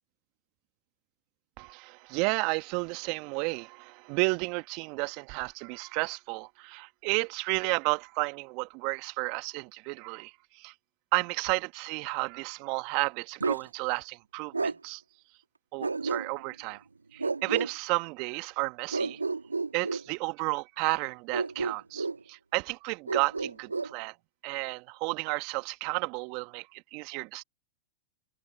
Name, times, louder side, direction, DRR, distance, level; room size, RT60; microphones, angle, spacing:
voice 1, 1.6-10.7 11.1-15.0 15.7-16.8 17.1-19.2 19.7-24.1 24.4-27.4, right 30 dB, 45° right, 1.7 m, -32 dB
Bark, 13.4-13.7 14.5-14.8 15.8-16.5 17.2-17.7 18.9-20.1 21.3-22.2 23.1-23.9, right 4 dB, 90° right, 1.9 m, -31 dB
figure-of-eight pair, 100°, 0 cm